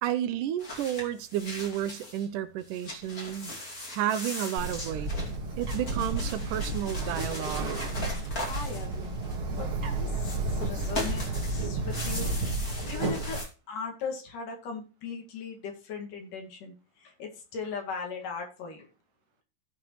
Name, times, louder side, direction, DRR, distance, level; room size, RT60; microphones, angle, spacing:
voice 1, 0.0-3.5 3.9-5.1 5.6-7.7, right 11 dB, 80° right, 2.1 m, -31 dB
sound 1, 0.6-2.3 2.6-9.6 10.2-13.5, left 1 dB, 30° left, 2.5 m, -39 dB
Bird, 4.6-13.4, right 2 dB, 45° right, 2.3 m, -32 dB
voice 2, 8.5-9.1 9.6-11.3 11.5-12.3 12.9-13.4 13.7-18.9, left 5 dB, 70° left, 3.6 m, -38 dB
16.0 x 6.1 x 3.1 m
omnidirectional pair, 3.9 m